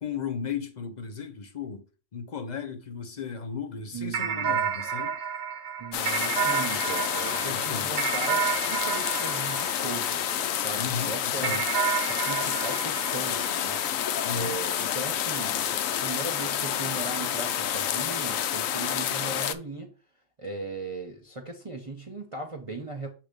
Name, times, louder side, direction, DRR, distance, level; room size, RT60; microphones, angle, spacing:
voice 1, 0.0-1.8 2.1-5.2 7.5-7.9 10.8-11.7 14.2-14.6, left 6 dB, 40° left, 0.7 m, -35 dB
voice 2, 3.9-4.6 5.8-11.6 12.0-13.8 14.3-19.9 20.4-23.1, right 3 dB, 30° right, 0.7 m, -38 dB
sound 1, 4.1-10.7 11.4-14.2, right 7 dB, 70° right, 1.1 m, -31 dB
sound 2, 5.9-19.5, left 10 dB, 75° left, 1.0 m, -29 dB
7.2 x 2.9 x 5.1 m
omnidirectional pair, 1.4 m